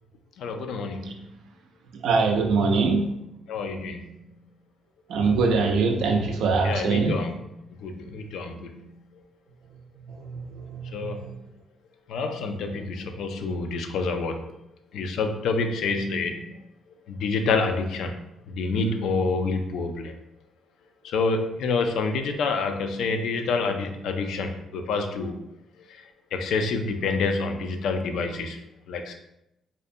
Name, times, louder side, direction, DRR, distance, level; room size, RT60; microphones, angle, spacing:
voice 1, 0.4-1.2 3.5-4.3 6.6-7.4 7.8-9.1 10.9-11.3 12.1-14.6 14.9-16.6 17.1-18.2 18.5-20.1 21.0-25.4 25.9-26.0 26.3-29.2, left 4 dB, 80° left, 6 dB, 0.3 m, -28 dB
voice 2, 1.9-3.1 5.1-7.2 10.2-11.3, right 4 dB, 80° right, 3 dB, 0.4 m, -23 dB
2.5 x 2.1 x 2.6 m, 0.85 s
cardioid pair, 90°, 0 cm